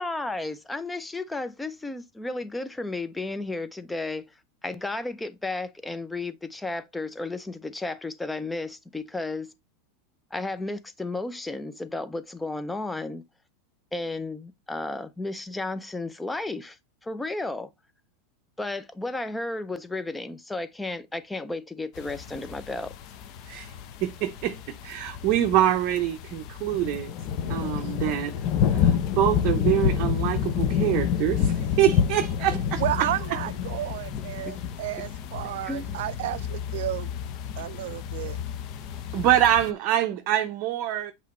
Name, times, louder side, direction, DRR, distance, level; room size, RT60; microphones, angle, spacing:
voice 1, 0.0-4.3 4.6-9.5 10.3-13.2 13.9-16.8 17.0-17.7 18.6-22.9 34.4-34.5 35.6-35.9, left 2 dB, 5° left, 0.5 m, -33 dB
sound 1, 22.0-39.7, left 8 dB, 45° left, 0.7 m, -29 dB
voice 2, 24.0-24.6 24.8-27.1 27.5-28.3 28.7-33.4 39.1-41.1, right 12 dB, 45° right, 0.7 m, -25 dB
voice 3, 32.8-37.1 37.6-38.4, right 15 dB, 70° right, 0.3 m, -32 dB
8.2 x 3.1 x 4.2 m
supercardioid pair, 150°, 0 cm